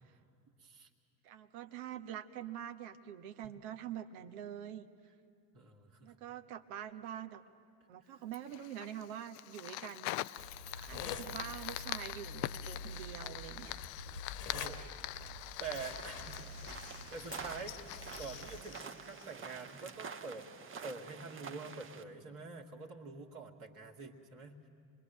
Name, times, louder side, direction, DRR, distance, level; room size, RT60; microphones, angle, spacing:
voice 1, 0.6-0.9 5.5-6.1 8.0-8.2 10.7-10.9 14.5-14.9 15.6-16.5 17.1-17.8 18.2-20.5 20.8-24.6, right 4 dB, 40° right, 0 dB, 2.2 m, -46 dB
voice 2, 1.2-4.9 6.0-7.4 7.9-10.2 10.9-13.8, right 10 dB, 60° right, 9 dB, 1.2 m, -45 dB
Fire, 8.3-19.7, left 17 dB, 50° left, 0.6 m, -44 dB
sound 1, 10.4-18.6, left 3 dB, 75° left, 1.7 m, -47 dB
sound 2, 15.8-22.0, right 6 dB, 25° right, 1.2 m, -48 dB
27.5 x 22.0 x 8.1 m, 2.4 s
figure-of-eight pair, 65°, 48 cm